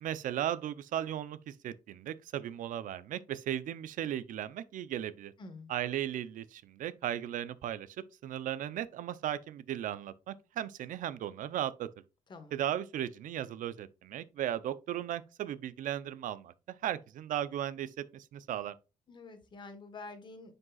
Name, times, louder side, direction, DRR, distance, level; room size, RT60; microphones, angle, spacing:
voice 1, 0.0-5.3 5.7-7.9 8.2-11.9 12.5-18.7, right 11 dB, 75° right, 0.6 m, -36 dB
voice 2, 5.4-5.7 12.3-12.5 19.1-20.5, left 3 dB, 35° left, 1.4 m, -47 dB
9.5 x 5.4 x 2.3 m
cardioid pair, 170°, 14 cm